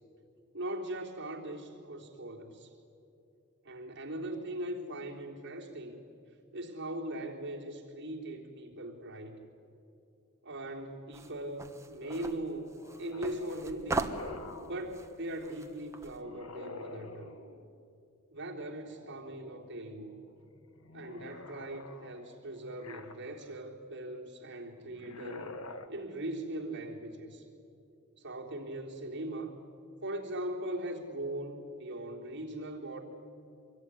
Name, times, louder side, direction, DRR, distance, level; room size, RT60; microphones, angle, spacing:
voice 1, 0.5-2.7 3.6-6.0 6.5-9.4 10.4-12.7 13.0-14.1 14.6-17.3 18.3-20.2 20.9-25.5 25.9-27.5 28.2-29.5 30.0-33.0, right 1 dB, 55° right, 0 dB, 3.6 m, -40 dB
sound 1, 11.1-16.2, right 2 dB, 15° right, 1.3 m, -39 dB
sound 2, 12.0-14.8 16.1-17.7 18.6-19.7 20.1-23.6 24.9-25.9, left 3 dB, 70° left, 1.6 m, -48 dB
25.5 x 22.0 x 10.0 m, 2.6 s
head